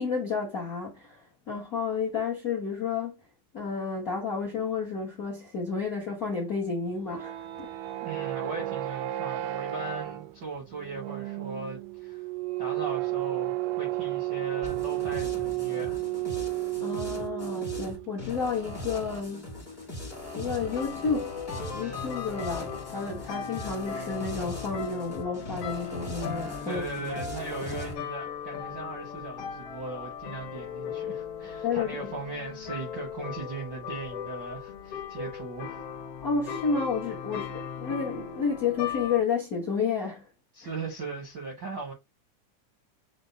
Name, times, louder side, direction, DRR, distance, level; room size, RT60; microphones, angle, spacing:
voice 1, 0.0-3.2 3.5-7.7 16.8-19.5 20.3-21.3 21.7-26.8 31.6-32.1 36.2-40.3, left 5 dB, 85° left, 0.8 m, -31 dB
sound 1, 6.9-18.1, right 16 dB, 90° right, 2.2 m, -32 dB
voice 2, 8.0-12.2 12.6-16.0 26.6-35.8 40.5-41.9, right 3 dB, 70° right, 1.1 m, -38 dB
sound 2, 14.6-28.0, left 1 dB, 25° left, 0.5 m, -40 dB
sound 3, 20.6-39.2, left 7 dB, 65° left, 1.5 m, -38 dB
6.0 x 2.1 x 3.8 m
omnidirectional pair, 3.7 m